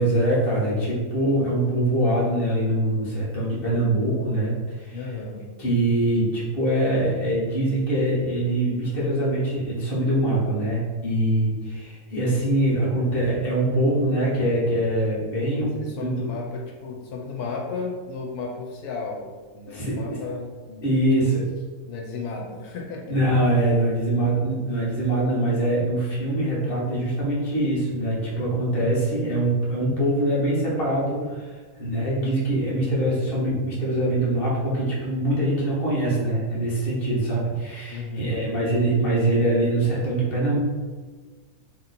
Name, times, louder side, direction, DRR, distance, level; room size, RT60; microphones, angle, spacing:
voice 1, 0.0-5.0 5.6-16.3 19.7-19.9 20.8-21.4 23.1-40.6, right 1 dB, 40° left, -6 dB, 1.3 m, -23 dB
voice 2, 4.9-5.4 15.6-19.3 19.5-20.8 21.2-21.3 21.9-23.2 37.9-38.3, left 4 dB, 90° left, -1 dB, 1.1 m, -34 dB
3.2 x 3.0 x 4.0 m, 1.4 s
omnidirectional pair, 1.6 m